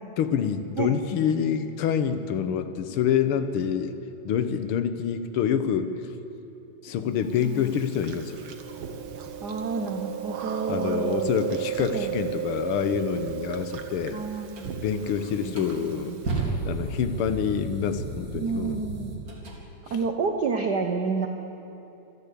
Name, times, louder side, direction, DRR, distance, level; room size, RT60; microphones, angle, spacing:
voice 1, 0.2-3.9 4.2-5.9 6.8-8.4 10.7-14.2 14.8-16.2 16.6-18.8 19.9-20.0, left 8 dB, 65° left, 10 dB, 1.4 m, -27 dB
voice 2, 7.2-7.8 9.4-11.3 11.9-12.1 14.1-14.7 15.4-16.1 18.3-19.2 19.9-21.3, right 4 dB, 70° right, 4 dB, 0.9 m, -30 dB
Chewing mastication, 7.4-16.3, right 10 dB, 55° right, 1.7 m, -34 dB
sound 1, 14.5-14.7 15.3-19.6, right 3 dB, 30° right, 2.7 m, -33 dB
27.5 x 12.0 x 8.5 m, 2.9 s
omnidirectional pair, 3.3 m